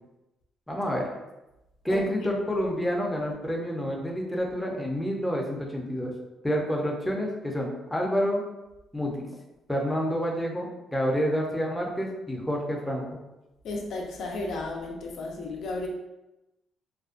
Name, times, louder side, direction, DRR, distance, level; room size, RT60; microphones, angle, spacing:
voice 1, 0.7-1.1 1.8-6.1 6.4-8.4 8.9-9.3 9.7-13.2, equal, 10° left, -1 dB, 0.5 m, -28 dB
voice 2, 13.6-15.9, left 2 dB, 70° left, 0 dB, 0.4 m, -33 dB
2.5 x 2.2 x 2.4 m, 0.97 s
cardioid pair, 90°, 0 cm